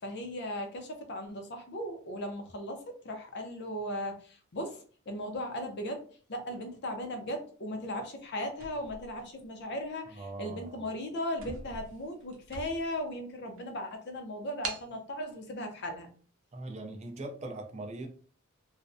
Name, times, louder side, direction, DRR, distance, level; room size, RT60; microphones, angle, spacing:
voice 1, 0.0-6.0 6.3-16.1, left 1 dB, 55° left, 4 dB, 0.5 m, -37 dB
sound 1, 8.6-9.8 10.5-10.7 11.0-11.1 11.3-13.1 13.6-13.7 14.6-14.9, right 3 dB, 80° right, 0.5 m, -43 dB
voice 2, 10.2-10.8 16.5-18.1, right 2 dB, 35° right, 2 dB, 0.4 m, -41 dB
2.4 x 2.0 x 2.6 m, 0.43 s
head